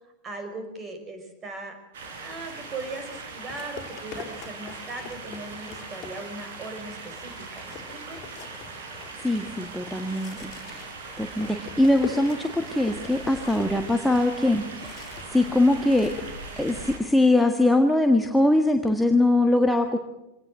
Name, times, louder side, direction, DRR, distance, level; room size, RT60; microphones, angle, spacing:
voice 1, 0.2-1.7 2.2-8.2, right 2 dB, 25° right, 7 dB, 5.4 m, -38 dB
sound 1, 1.9-17.0, right 4 dB, 60° right, 5.2 m, -40 dB
sound 2, 2.6-2.7 3.5-6.5 6.9-7.0 7.3-15.4 15.7-16.8, left 9 dB, 35° left, 3.7 m, -43 dB
voice 2, 9.2-10.8 11.2-15.0 15.3-16.1 16.6-20.0, left 1 dB, 5° left, 4 dB, 1.6 m, -22 dB
25.0 x 18.5 x 7.6 m, 0.90 s
figure-of-eight pair, 90°, 0 cm